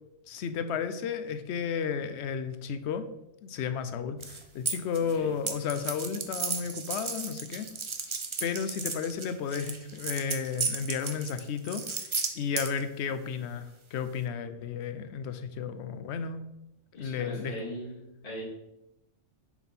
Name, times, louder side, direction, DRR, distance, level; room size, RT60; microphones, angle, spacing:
voice 1, 0.3-3.1 3.4-7.7 8.4-16.4 17.0-17.5, left 6 dB, 65° left, 10 dB, 0.8 m, -33 dB
sound 1, 4.2-5.1 5.5-12.8, right 5 dB, 40° right, 0.4 m, -34 dB
voice 2, 5.0-5.3 16.9-18.4, equal, 45° left, -6 dB, 2.3 m, -40 dB
6.9 x 4.2 x 4.2 m, 0.90 s
omnidirectional pair, 1.3 m